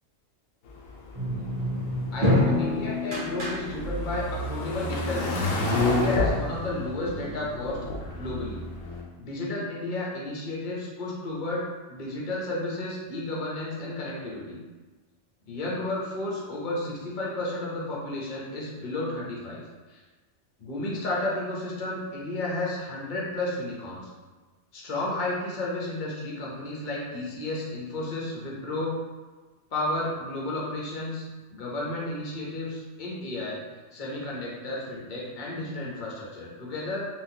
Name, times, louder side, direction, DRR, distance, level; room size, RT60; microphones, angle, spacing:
sound 1, 0.7-9.0, left 2 dB, 85° left, 1.0 m, -30 dB
sound 2, 1.1-4.1, left 1 dB, 55° right, 1.1 m, -26 dB
voice 1, 2.1-5.3 5.8-7.8 8.1-8.6 9.2-14.6 15.4-19.6 19.9-20.0 20.6-24.1 24.7-28.9 29.7-31.2 31.5-33.6 33.9-37.0, left 2 dB, 45° left, -5 dB, 0.8 m, -32 dB
3.7 x 2.4 x 2.7 m, 1.3 s
omnidirectional pair, 1.3 m